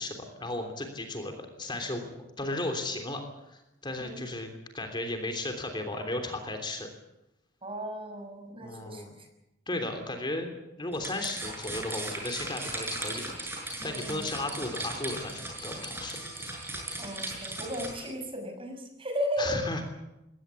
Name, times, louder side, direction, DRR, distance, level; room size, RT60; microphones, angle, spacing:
voice 1, 0.0-2.1 2.4-4.5 4.7-6.9 8.5-9.1 9.7-10.5 10.8-13.3 13.8-16.2 19.4-19.8, left 2 dB, 25° left, 5 dB, 3.2 m, -35 dB
voice 2, 7.6-9.0 13.8-14.2 17.0-19.6, equal, 30° right, 5 dB, 6.0 m, -35 dB
sound 1, 10.9-18.1, right 1 dB, 15° right, 6.7 m, -37 dB
22.0 x 18.0 x 8.3 m, 0.93 s
head